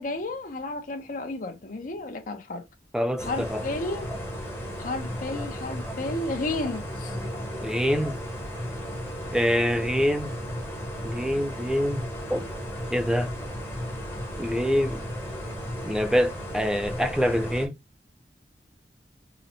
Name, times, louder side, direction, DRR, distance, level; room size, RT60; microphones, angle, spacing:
voice 1, 0.0-2.6 3.2-4.1 4.8-7.2, left 2 dB, 50° left, 0.6 m, -32 dB
voice 2, 2.9-3.7 7.6-8.1 9.3-10.3 11.0-12.0 12.3-12.4 12.9-13.3 14.4-15.0 15.8-17.7, equal, 5° right, 0.3 m, -25 dB
sound 1, 3.2-17.7, equal, 15° left, 0.8 m, -35 dB
3.9 x 2.0 x 2.7 m
head